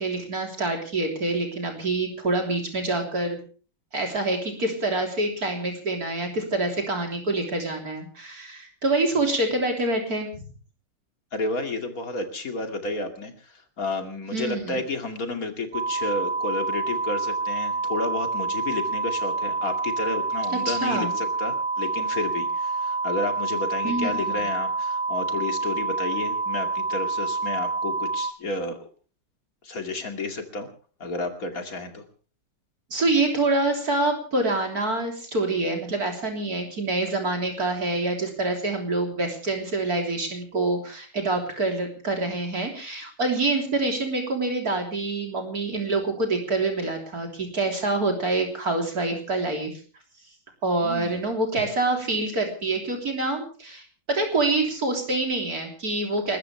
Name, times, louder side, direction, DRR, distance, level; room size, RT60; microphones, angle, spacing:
voice 1, 0.0-3.4 3.9-10.3 14.3-14.8 20.7-21.2 23.8-24.4 32.9-49.7 50.6-56.4, right 2 dB, 50° right, 3 dB, 3.9 m, -26 dB
voice 2, 11.3-28.8 29.6-30.7 31.0-32.0 50.8-51.2, left 2 dB, 50° left, 5 dB, 2.8 m, -31 dB
sound 1, 15.7-28.3, right 3 dB, 70° right, 2.0 m, -27 dB
29.5 x 13.5 x 3.3 m, 0.39 s
omnidirectional pair, 2.0 m